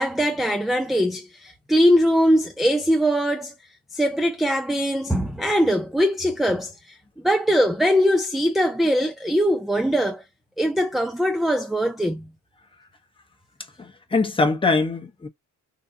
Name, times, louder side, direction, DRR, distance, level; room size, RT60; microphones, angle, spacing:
voice 1, 0.0-3.5 3.9-7.0 7.2-10.2 10.6-12.3, equal, ahead, 0.5 m, -21 dB
voice 2, 13.8-15.3, left 3 dB, 15° left, 1.0 m, -22 dB
3.8 x 2.3 x 2.8 m
cardioid pair, 100°, 32 cm